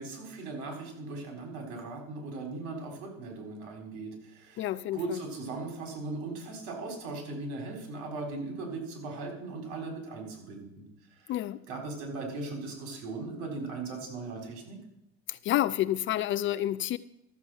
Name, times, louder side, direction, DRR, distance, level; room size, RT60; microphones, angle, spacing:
voice 1, 0.0-4.6 4.9-10.9 11.2-11.4 11.7-14.8, right 3 dB, 65° right, 4.2 m, -38 dB
voice 2, 4.6-5.2 11.3-11.6 15.3-17.0, left 13 dB, 40° left, 0.4 m, -29 dB
13.0 x 7.3 x 6.3 m
supercardioid pair, 115°, 32 cm